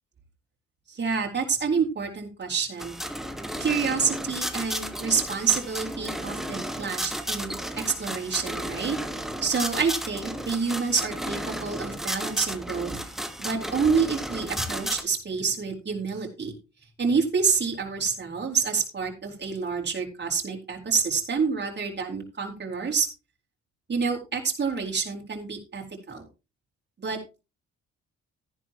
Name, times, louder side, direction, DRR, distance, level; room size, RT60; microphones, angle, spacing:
voice 1, 0.9-3.0 3.6-9.0 9.4-12.9 13.4-16.5 17.0-23.1 23.9-26.3 27.0-27.2, right 5 dB, 35° right, 0 dB, 4.3 m, -28 dB
sound 1, 2.8-15.0, equal, ahead, 1.7 m, -33 dB
13.5 x 11.0 x 3.0 m, 0.29 s
cardioid pair, 90°, 30 cm